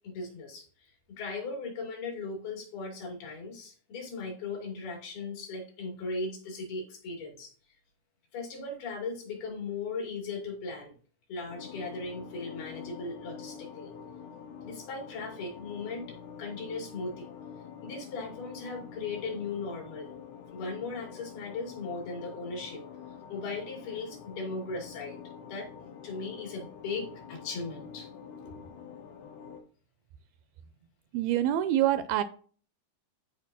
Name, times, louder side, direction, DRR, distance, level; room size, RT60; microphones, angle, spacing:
voice 1, 0.0-7.5 8.3-10.9 11.3-13.9 14.6-17.3 17.8-20.1 20.5-22.8 23.3-25.2 25.5-25.7 26.0-28.1 28.5-28.6, left 3 dB, 70° left, 0 dB, 4.7 m, -38 dB
sound 1, 11.5-29.6, left 7 dB, 85° left, 3.6 m, -46 dB
voice 2, 31.1-32.2, right 12 dB, 80° right, 13 dB, 2.3 m, -26 dB
13.5 x 5.1 x 2.8 m, 0.42 s
omnidirectional pair, 4.6 m